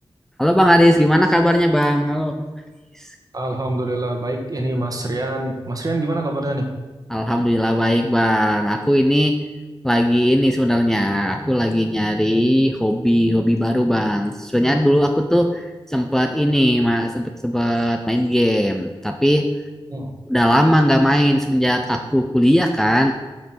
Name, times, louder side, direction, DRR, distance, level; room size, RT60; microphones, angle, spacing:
voice 1, 0.4-2.4 3.0-3.1 7.1-9.4 9.8-19.5 20.3-23.1, equal, 5° left, 4 dB, 0.6 m, -18 dB
voice 2, 3.3-6.6 19.9-20.1, right 1 dB, 40° right, 2 dB, 1.6 m, -25 dB
9.1 x 5.3 x 6.3 m, 1.3 s
wide cardioid pair, 85°, 10 cm